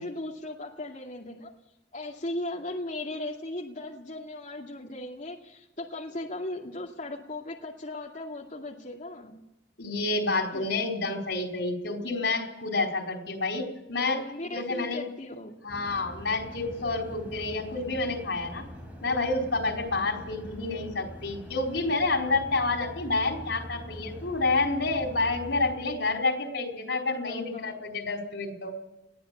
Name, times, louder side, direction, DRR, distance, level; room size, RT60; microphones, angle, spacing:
voice 1, 0.0-1.5 1.9-9.4 10.5-10.7 14.1-15.6 27.3-27.8, left 1 dB, 45° left, -1 dB, 2.3 m, -37 dB
voice 2, 9.8-15.0 15.6-18.6 19.0-28.7, left 3 dB, 90° left, 2 dB, 4.6 m, -29 dB
sound 1, 15.7-25.7, equal, 10° right, 4.7 m, -43 dB
21.5 x 15.5 x 8.5 m, 0.94 s
head